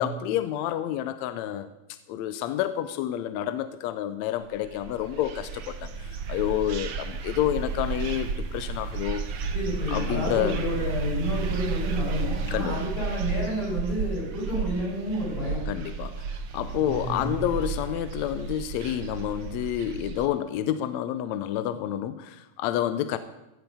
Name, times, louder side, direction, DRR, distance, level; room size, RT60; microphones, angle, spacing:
voice 1, 0.0-1.7 2.1-9.2 9.9-10.6 12.5-12.8 15.7-23.2, left 11 dB, 80° left, 12 dB, 1.7 m, -29 dB
sound 1, 4.6-20.3, right 4 dB, 65° right, 1.5 m, -32 dB
voice 2, 9.5-15.6 16.8-17.4, equal, 55° left, -6 dB, 8.0 m, -30 dB
15.0 x 7.9 x 6.9 m, 0.94 s
omnidirectional pair, 3.6 m